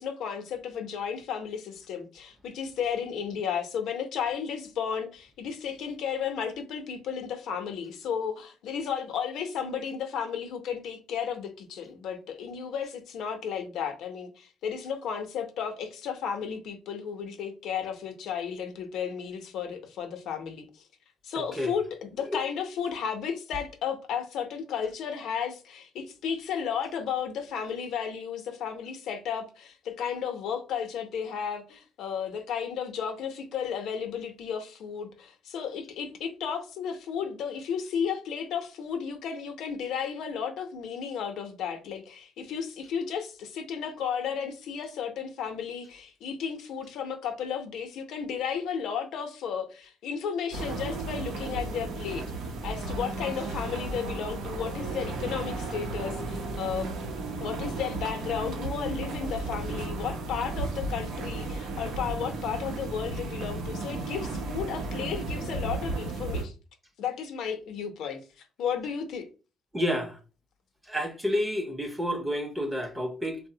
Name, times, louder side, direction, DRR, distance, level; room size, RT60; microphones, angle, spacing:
voice 1, 0.0-20.7 21.2-52.2 52.6-56.9 57.4-66.5 67.0-68.2 68.6-69.3, left 7 dB, 75° left, 0.5 m, -33 dB
voice 2, 21.3-21.7 22.3-22.4 69.7-70.2 70.9-73.4, equal, 10° right, 0.6 m, -30 dB
sound 1, 50.5-66.4, right 2 dB, 80° right, 0.6 m, -34 dB
3.3 x 2.0 x 2.7 m
cardioid pair, 115°, 0 cm